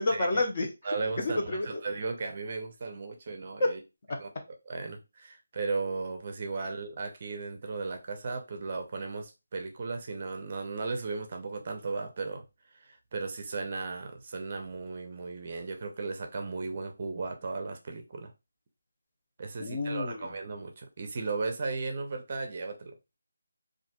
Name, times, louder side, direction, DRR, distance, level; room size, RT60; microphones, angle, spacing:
voice 1, 0.0-1.8 3.6-3.8 4.1-4.2 6.6-6.7 19.6-20.3, left 2 dB, 35° left, 0.7 m, -30 dB
voice 2, 0.8-1.4 1.8-3.8 4.2-4.3 4.7-12.4 12.7-18.3 19.4-23.0, right 4 dB, 35° right, 0.5 m, -36 dB
4.1 x 2.5 x 2.3 m
figure-of-eight pair, 170°, 0 cm